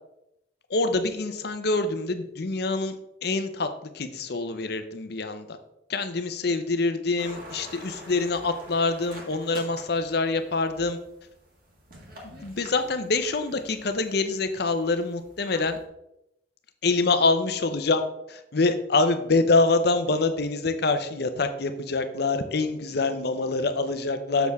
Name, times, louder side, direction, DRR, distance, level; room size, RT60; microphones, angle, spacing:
voice 1, 0.7-3.0 3.2-3.7 3.9-5.6 5.9-11.0 12.4-15.8 16.8-18.0 18.3-24.5, left 3 dB, 60° left, 9 dB, 0.7 m, -25 dB
sound 1, 7.2-15.8, equal, 55° right, 1.9 m, -47 dB
6.9 x 6.5 x 3.5 m, 0.83 s
head